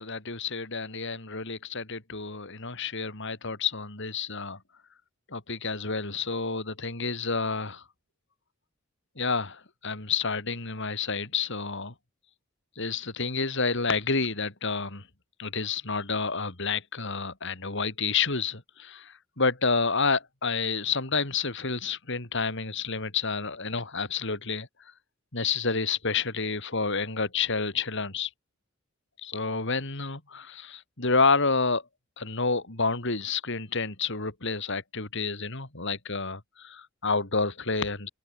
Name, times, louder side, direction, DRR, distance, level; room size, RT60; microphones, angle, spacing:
voice 1, 0.0-4.6 5.3-7.8 9.2-11.9 12.8-15.0 15.4-24.7 25.3-28.3 29.2-31.8 32.2-38.1, left 4 dB, 65° left, 4.1 m, -29 dB
open air
head